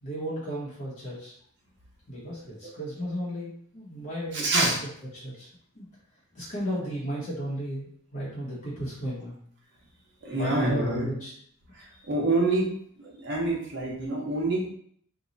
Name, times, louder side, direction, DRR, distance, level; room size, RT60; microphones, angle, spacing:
voice 1, 0.0-1.3 2.1-4.5 5.1-5.5 5.7-5.9 6.3-9.4 10.3-11.3, equal, 40° left, -8 dB, 0.9 m, -34 dB
voice 2, 4.3-4.8 10.2-11.1 12.1-12.7 13.0-14.7, right 2 dB, 60° right, -3 dB, 1.0 m, -26 dB
2.9 x 2.3 x 3.8 m, 0.63 s
head